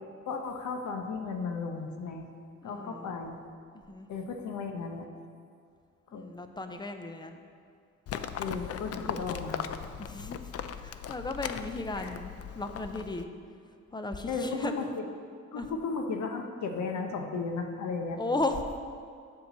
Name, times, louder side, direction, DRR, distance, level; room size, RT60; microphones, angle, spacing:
voice 1, 0.3-2.3 2.6-3.4 4.1-5.1 6.1-6.3 8.4-9.7 12.0-12.1 14.3-14.8 15.5-18.2, left 4 dB, 70° left, 4 dB, 0.9 m, -35 dB
voice 2, 2.6-3.1 3.9-4.1 6.1-7.4 8.4-9.2 10.0-10.5 10.8-13.3 13.9-14.7 15.5-15.7 18.2-18.6, left 2 dB, 15° left, 6 dB, 0.6 m, -35 dB
Livestock farm animals working animals, 8.1-13.2, left 8 dB, 50° left, 0.5 m, -38 dB
7.8 x 4.7 x 6.7 m, 2.3 s
cardioid pair, 90°, 30 cm